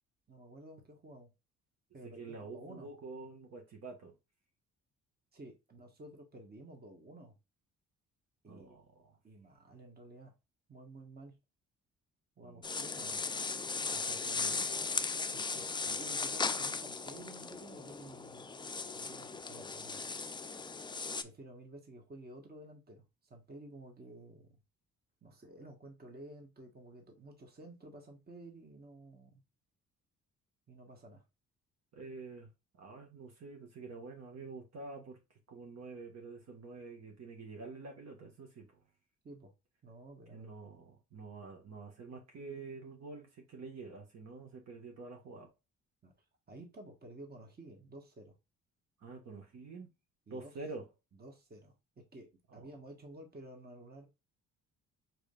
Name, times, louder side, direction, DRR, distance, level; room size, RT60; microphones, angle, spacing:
voice 1, 0.3-1.3 1.9-2.9 5.3-7.4 8.4-8.8 9.2-10.3 10.7-11.4 12.4-13.2 15.3-18.5 18.9-20.2 21.2-24.5 25.2-29.4 30.7-31.2 39.2-39.5 39.8-40.5 46.0-46.1 46.5-48.3 50.3-50.5 51.2-52.3 52.5-54.1, right 1 dB, 30° right, 1.5 m, -52 dB
voice 2, 2.0-4.1 8.5-9.2 12.4-12.7 13.9-14.7 31.9-32.5 32.8-35.2 35.5-38.8 40.3-45.5 49.0-49.9 50.3-50.9 52.5-52.7, right 3 dB, 60° right, 1.7 m, -48 dB
sound 1, 12.6-21.2, left 4 dB, 15° left, 0.4 m, -37 dB
4.9 x 4.3 x 2.4 m
cardioid pair, 90°, 30 cm